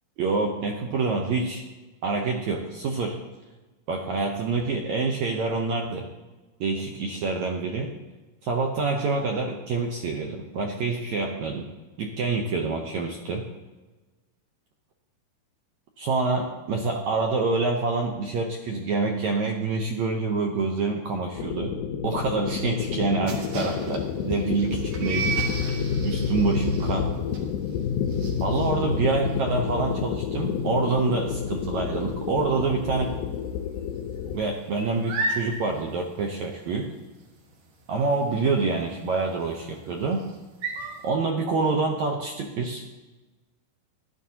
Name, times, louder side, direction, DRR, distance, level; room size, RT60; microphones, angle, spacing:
voice 1, 0.2-1.6 2.0-3.2 3.9-6.1 6.6-7.9 8.4-11.7 12.0-13.4 16.0-21.7 22.0-25.4 26.0-27.1 28.4-33.1 34.3-36.9 37.9-40.2 41.0-42.8, right 4 dB, 85° right, 1 dB, 1.6 m, -26 dB
sound 1, 21.3-34.4, left 7 dB, 80° left, 2.3 m, -29 dB
sound 2, 23.3-32.7 33.0-33.4 33.7-41.1, right 4 dB, 65° right, 3.0 m, -35 dB
15.0 x 12.0 x 2.9 m, 1.2 s
omnidirectional pair, 4.5 m